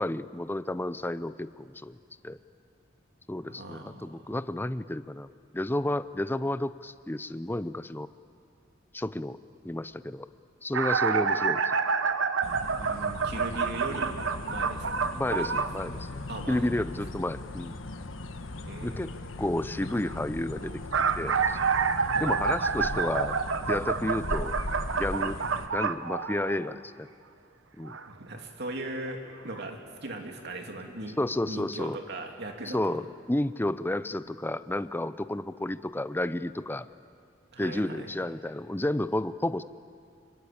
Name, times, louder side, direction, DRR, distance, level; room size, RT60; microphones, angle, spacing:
voice 1, 0.0-2.0 2.2-2.4 3.3-5.3 5.5-8.1 8.9-9.4 9.6-10.3 10.6-11.6 15.1-16.1 16.5-17.8 18.8-19.1 19.4-20.8 21.2-21.6 22.2-23.4 23.7-24.6 24.9-25.4 25.7-27.1 27.8-28.0 31.2-32.0 32.7-36.9 37.6-39.6, left 1 dB, 10° left, 14 dB, 0.5 m, -31 dB
voice 2, 3.4-4.3 12.8-14.2 14.5-15.1 15.5-15.6 16.3-16.8 18.7-19.4 22.1-22.3 28.2-31.2 31.5-32.8 37.5-38.1, right 2 dB, 55° right, 3 dB, 2.7 m, -39 dB
sound 1, 10.7-15.8 20.6-26.8 27.9-28.0 29.1-29.2 29.5-29.6, right 5 dB, 75° right, 0.9 m, -28 dB
sound 2, 12.4-25.7, left 2 dB, 85° left, 1.2 m, -39 dB
25.5 x 22.0 x 8.7 m, 2.3 s
head